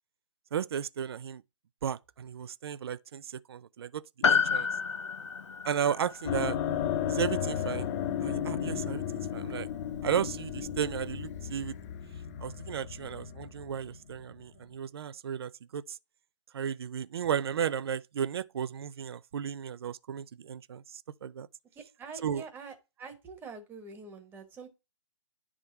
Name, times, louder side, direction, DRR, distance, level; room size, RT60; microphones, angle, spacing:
voice 1, 0.5-1.4 1.8-4.7 5.6-6.6 7.1-7.9 8.2-9.7 10.0-11.7 12.4-16.0 16.5-21.5 22.2-22.4, right 8 dB, 55° right, 0.4 m, -34 dB
Piano, 4.2-8.8 9.1-9.2, left 6 dB, 70° left, 0.6 m, -31 dB
sound 1, 6.3-14.6, left 9 dB, 35° left, 0.8 m, -34 dB
voice 2, 21.7-24.7, right 4 dB, 15° right, 1.2 m, -46 dB
10.5 x 3.7 x 4.3 m
figure-of-eight pair, 135°, 16 cm